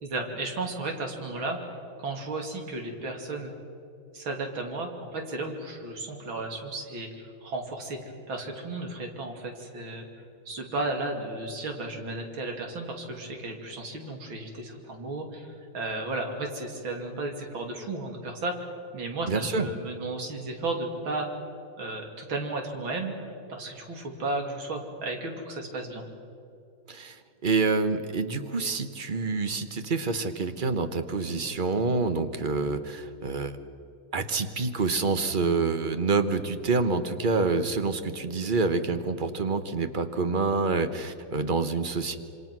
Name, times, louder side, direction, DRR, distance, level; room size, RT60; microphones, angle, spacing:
voice 1, 0.0-1.6 2.0-3.5 4.1-8.0 8.3-10.1 10.5-21.3 21.8-26.0, right 2 dB, 70° right, 2 dB, 3.6 m, -34 dB
voice 2, 19.3-19.7 26.9-33.5 34.1-42.2, right 4 dB, 30° right, 9 dB, 1.0 m, -27 dB
27.0 x 25.5 x 6.2 m, 2.6 s
omnidirectional pair, 2.3 m